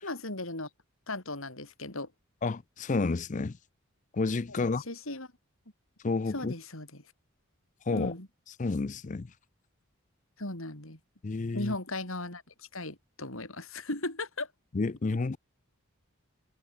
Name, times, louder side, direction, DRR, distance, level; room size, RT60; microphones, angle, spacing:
voice 1, 0.0-0.7 1.1-2.1 4.5-5.3 6.3-7.0 7.9-8.3 10.4-11.0 11.5-14.5, left 2 dB, 70° left, 6.2 m, -37 dB
voice 2, 2.4-3.6 4.1-4.8 6.0-6.5 7.9-8.1 8.6-9.3 11.2-11.7 14.7-15.4, left 3 dB, 35° left, 0.5 m, -30 dB
head